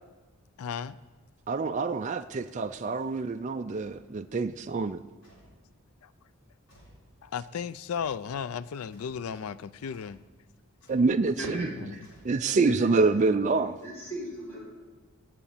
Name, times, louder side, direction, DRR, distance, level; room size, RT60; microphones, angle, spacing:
voice 1, 0.6-1.0 6.0-6.1 7.2-10.2, left 7 dB, 80° left, 0.4 m, -35 dB
voice 2, 1.5-5.0 10.9-11.7 12.2-13.7, right 3 dB, 35° right, 0.4 m, -26 dB
sound 1, 3.8-4.1 5.2-5.6 6.7-7.1 7.9-8.3 8.9-9.3 9.9-10.3 10.8-11.2 12.0-12.7, equal, 55° left, 4.3 m, -58 dB
voice 3, 11.4-12.0 12.4-13.5 13.8-14.7, right 1 dB, 10° left, 4.1 m, -37 dB
9.8 x 8.4 x 8.8 m
head